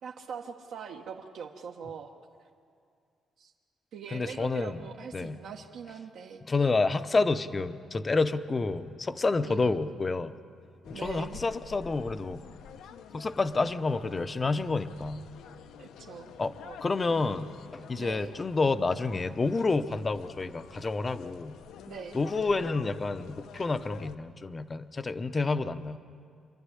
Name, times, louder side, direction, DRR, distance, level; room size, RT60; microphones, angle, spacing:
voice 1, 0.0-2.1 3.4-3.5 3.9-6.7 9.4-9.8 10.9-11.4 15.8-16.3 16.6-16.8 17.9-18.3 21.9-22.2, right 6 dB, 70° right, 1 dB, 1.2 m, -42 dB
voice 2, 4.1-4.8 5.1-5.4 6.5-10.3 10.9-12.4 13.1-15.2 16.4-16.5 16.8-21.5 22.1-26.0, left 3 dB, 25° left, 12 dB, 0.7 m, -29 dB
sound 1, 10.8-24.2, left 8 dB, 85° left, 0.8 m, -49 dB
26.5 x 12.0 x 9.9 m, 2.3 s
cardioid pair, 145°, 0 cm